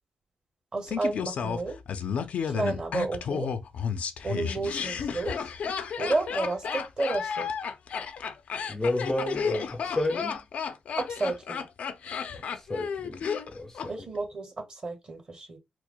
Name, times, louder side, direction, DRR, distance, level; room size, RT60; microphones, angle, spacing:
voice 1, 0.7-1.8 2.5-3.5 4.2-5.4 6.0-7.5 11.0-11.6 13.9-15.6, right 3 dB, 40° right, 1.5 m, -31 dB
Laughter, 0.9-13.9 14.2-14.3, left 6 dB, 75° left, 0.5 m, -32 dB
voice 2, 8.7-10.5 12.5-13.9, left 1 dB, 20° left, 0.5 m, -31 dB
4.6 x 2.0 x 2.2 m
cardioid pair, 95°, 2 cm